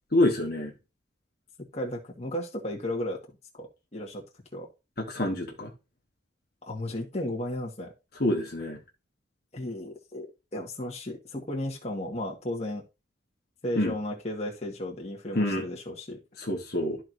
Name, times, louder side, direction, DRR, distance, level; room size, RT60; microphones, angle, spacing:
voice 1, 0.1-0.7 5.0-5.7 8.2-8.8 13.8-13.9 15.3-15.6 16.4-17.0, left 1 dB, 50° left, 1.5 m, -26 dB
voice 2, 1.6-3.2 3.6-4.2 4.5-4.7 6.6-7.9 9.5-10.3 10.5-12.8 13.6-16.2, left 1 dB, 30° left, 1.6 m, -34 dB
13.0 x 4.5 x 2.7 m
head